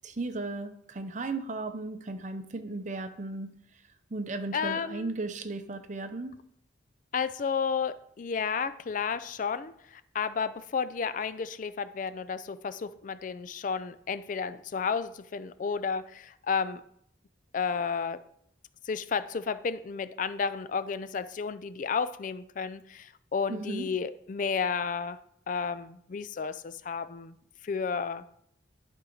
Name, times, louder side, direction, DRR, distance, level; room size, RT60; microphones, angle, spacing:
voice 1, 0.0-3.6 4.1-6.4 23.5-23.9, right 3 dB, 40° right, 0.7 m, -35 dB
voice 2, 4.5-5.1 7.1-16.8 17.5-18.2 18.9-25.2 25.5-27.3 27.6-28.2, left 6 dB, 45° left, 0.4 m, -32 dB
11.5 x 4.6 x 3.9 m
head